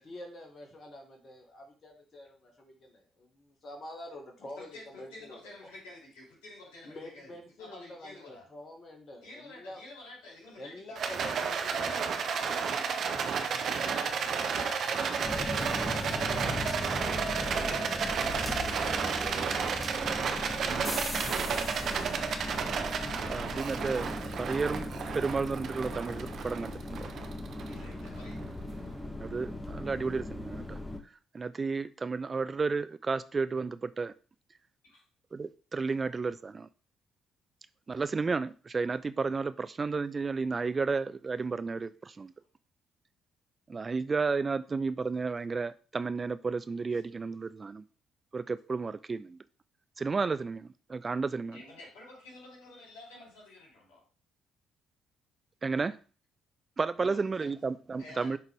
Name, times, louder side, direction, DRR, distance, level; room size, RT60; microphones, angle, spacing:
voice 1, 0.0-5.7 6.8-9.8 10.6-12.3 13.0-13.1, left 1 dB, 45° left, 1.8 m, -47 dB
voice 2, 4.5-7.3 7.6-8.4 9.2-11.0 13.3-18.2 18.9-20.0 20.4-21.7 27.6-28.4 34.8-35.0 51.5-54.0 57.0-57.5 58.0-58.4, left 2 dB, 70° left, 3.8 m, -50 dB
Rattle, 10.9-28.3, right 6 dB, 55° right, 0.9 m, -32 dB
sound 1, 15.2-31.0, left 1 dB, 15° left, 1.4 m, -38 dB
voice 3, 23.2-24.1 24.4-27.1 29.2-30.8 31.3-34.1 35.3-36.7 37.9-42.3 43.7-47.8 48.3-49.4 50.0-51.6 55.6-56.0 56.8-58.4, right 4 dB, 35° right, 0.4 m, -32 dB
11.0 x 4.0 x 3.5 m
figure-of-eight pair, 45°, 0 cm